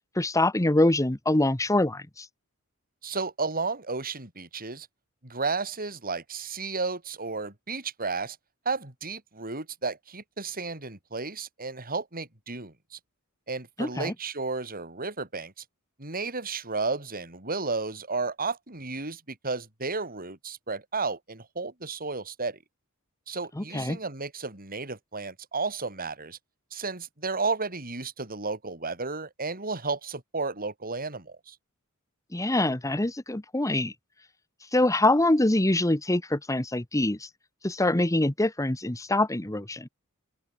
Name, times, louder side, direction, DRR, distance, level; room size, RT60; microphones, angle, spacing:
voice 1, 0.2-2.2 13.8-14.1 23.6-24.0 32.3-33.9 34.7-37.3 37.6-39.9, left 1 dB, 15° left, 1.2 m, -24 dB
voice 2, 3.0-4.9 5.2-8.4 8.6-13.0 13.5-15.6 16.0-22.6 23.3-26.4 26.7-31.6, right 4 dB, 40° right, 6.7 m, -33 dB
open air
head